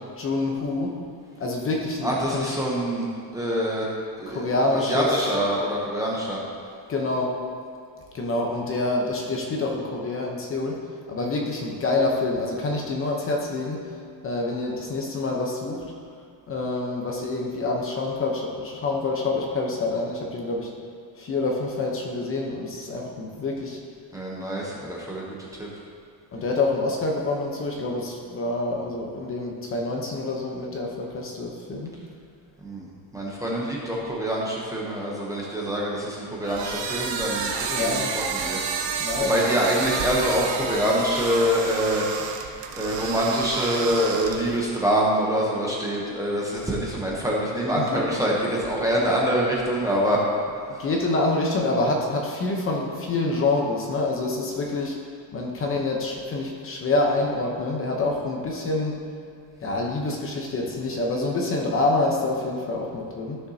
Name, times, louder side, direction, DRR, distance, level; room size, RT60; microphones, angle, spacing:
voice 1, 0.2-1.0 1.4-2.5 4.3-5.2 6.9-7.3 8.1-10.8 11.1-13.8 14.2-15.8 16.5-20.7 21.2-23.8 26.3-31.9 37.7-38.2 39.0-39.3 47.8-48.2 50.8-55.0 55.3-59.0 59.6-63.4, left 2 dB, 30° left, -1 dB, 0.9 m, -26 dB
voice 2, 2.0-3.1 3.3-3.9 4.2-6.4 24.1-25.2 25.6-25.7 32.6-38.6 38.9-42.0 42.8-50.2, equal, 5° right, -5 dB, 0.8 m, -25 dB
sound 1, 36.4-44.6, right 5 dB, 70° right, 1.0 m, -30 dB
14.0 x 6.5 x 2.8 m, 2.2 s
cardioid pair, 175°, 45 cm